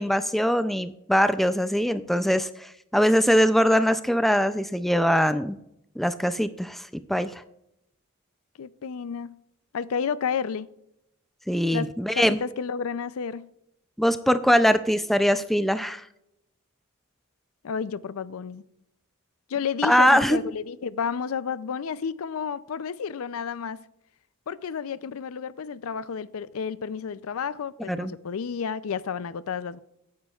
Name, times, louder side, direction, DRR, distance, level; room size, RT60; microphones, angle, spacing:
voice 1, 0.0-5.6 6.0-6.8 7.1-7.4 11.5-12.4 14.0-16.0 19.8-20.4 27.9-28.1, equal, ahead, 0.3 m, -22 dB
voice 2, 8.6-9.4 9.7-10.7 11.7-13.5 17.6-18.6 19.5-23.8 24.5-29.8, left 6 dB, 75° left, 0.4 m, -31 dB
17.0 x 9.6 x 2.4 m
head